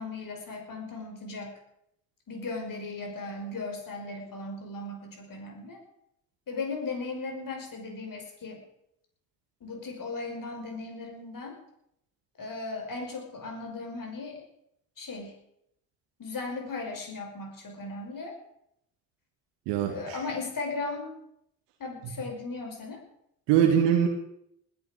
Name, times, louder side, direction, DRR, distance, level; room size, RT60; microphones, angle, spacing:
voice 1, 0.0-1.6 2.3-5.8 6.5-8.6 9.6-11.6 12.4-14.5 15.0-15.4 16.2-18.3 19.9-21.2 21.8-23.0, left 3 dB, 50° left, 3 dB, 5.6 m, -37 dB
voice 2, 19.7-20.2 23.5-24.1, right 9 dB, 75° right, 2 dB, 2.1 m, -22 dB
19.5 x 12.5 x 5.2 m, 0.75 s
hypercardioid pair, 45°, 43 cm